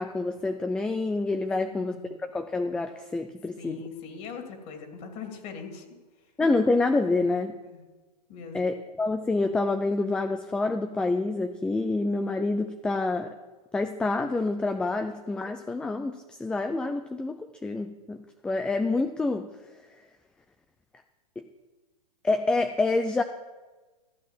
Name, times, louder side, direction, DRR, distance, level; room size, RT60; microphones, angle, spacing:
voice 1, 0.0-3.9 6.4-7.6 8.5-13.4 13.7-18.2 18.4-19.5 21.4-21.5 22.2-23.2, left 3 dB, 5° left, 8 dB, 0.4 m, -27 dB
voice 2, 1.6-2.1 3.6-5.8 7.6-7.8 8.3-8.6, left 5 dB, 35° left, 4 dB, 2.6 m, -41 dB
14.5 x 8.2 x 7.2 m, 1.2 s
hypercardioid pair, 135°, 21 cm